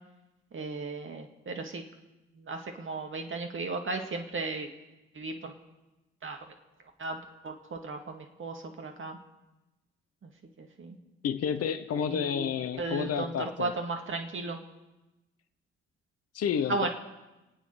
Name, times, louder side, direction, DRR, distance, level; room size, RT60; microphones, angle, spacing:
voice 1, 0.5-1.8 2.4-4.7 5.1-5.5 6.2-6.4 7.0-9.2 10.2-10.3 10.6-11.0 12.1-14.6 16.7-16.9, right 3 dB, 35° right, 4 dB, 2.2 m, -35 dB
voice 2, 11.2-13.7 16.3-16.9, left 8 dB, 45° left, 11 dB, 0.9 m, -30 dB
27.5 x 9.3 x 4.8 m, 1.0 s
figure-of-eight pair, 45°, 34 cm